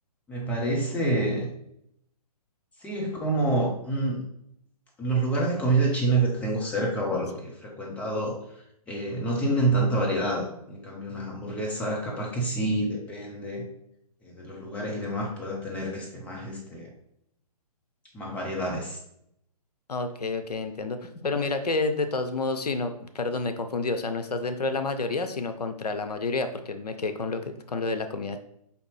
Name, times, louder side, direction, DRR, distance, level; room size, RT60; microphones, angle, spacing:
voice 1, 0.3-1.5 2.8-4.2 5.0-8.4 8.9-13.7 14.2-16.9 18.1-19.0, right 2 dB, 5° left, -1 dB, 0.7 m, -27 dB
voice 2, 19.9-28.4, left 3 dB, 85° left, 8 dB, 0.5 m, -29 dB
4.9 x 2.7 x 3.3 m, 0.74 s
figure-of-eight pair, 135°, 20 cm